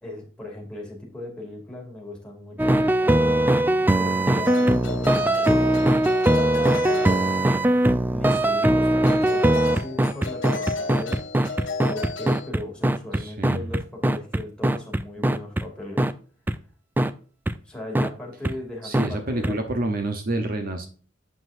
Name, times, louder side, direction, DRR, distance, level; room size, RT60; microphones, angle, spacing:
voice 1, 0.0-6.0 6.2-11.2 11.8-16.0 17.6-19.6, left 1 dB, 5° left, -2 dB, 2.5 m, -38 dB
sound 1, 2.6-15.6 16.0-16.1 16.5-16.6 17.0-17.1 17.5-17.6 17.9-18.1 18.4-18.5 18.9-19.1 19.4-19.5, right 1 dB, 10° right, 0.3 m, -20 dB
sound 2, 4.4-7.8 9.0-12.5, left 3 dB, 85° left, 1.4 m, -33 dB
voice 2, 13.2-13.7 18.8-20.9, right 2 dB, 50° right, 6 dB, 0.9 m, -28 dB
7.8 x 6.2 x 2.5 m, 0.40 s
head